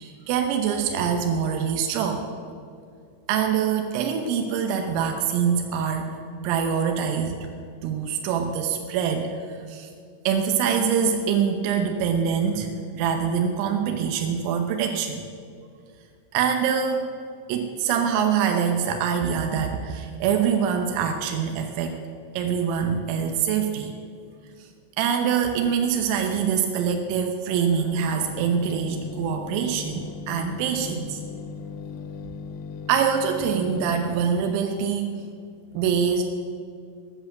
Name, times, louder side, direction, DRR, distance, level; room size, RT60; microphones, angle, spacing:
voice 1, 0.0-2.2 3.3-7.5 7.8-9.9 10.3-15.2 16.3-17.1 17.5-22.0 22.3-23.9 24.6-24.7 25.0-31.2 32.9-35.1 35.8-36.2, right 7 dB, 85° right, 4 dB, 3.6 m, -24 dB
sound 1, 27.9-34.6, left 5 dB, 90° left, 2.4 m, -38 dB
19.5 x 8.3 x 8.2 m, 2.3 s
omnidirectional pair, 5.9 m